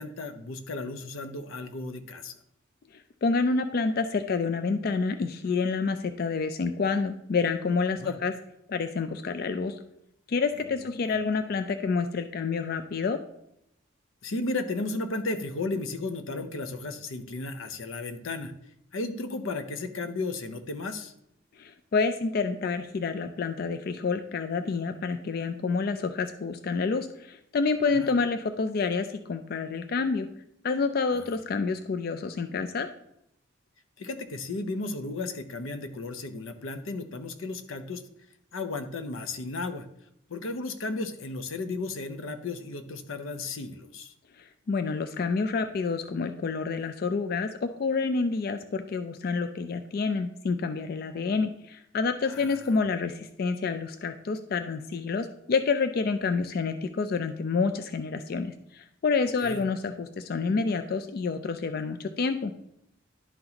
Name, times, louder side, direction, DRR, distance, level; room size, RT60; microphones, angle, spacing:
voice 1, 0.0-2.4 7.9-8.2 10.8-11.2 14.2-18.5 18.9-21.1 28.0-28.1 31.1-31.4 34.0-38.0 38.5-39.9 40.3-44.1 52.2-52.8 59.4-59.6, left 3 dB, 85° left, 8 dB, 0.7 m, -34 dB
voice 2, 2.9-8.3 8.7-9.8 10.3-13.2 21.6-30.3 30.6-32.9 44.4-62.5, left 4 dB, 50° left, 9 dB, 0.3 m, -28 dB
11.0 x 4.0 x 2.9 m, 0.78 s
head